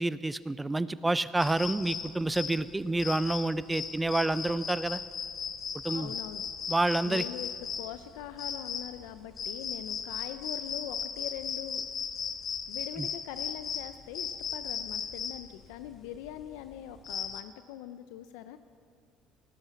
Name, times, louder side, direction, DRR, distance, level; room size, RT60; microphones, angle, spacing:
voice 1, 0.0-5.0 5.8-6.1 6.7-7.2 13.0-13.1, right 2 dB, 10° right, 16 dB, 0.5 m, -28 dB
sound 1, 1.4-17.4, left 7 dB, 40° left, 0.8 m, -37 dB
voice 2, 5.9-6.4 7.0-11.8 12.7-18.6, left 11 dB, 90° left, 10 dB, 0.5 m, -42 dB
18.5 x 9.8 x 5.9 m, 2.1 s
cardioid pair, 105°, 0 cm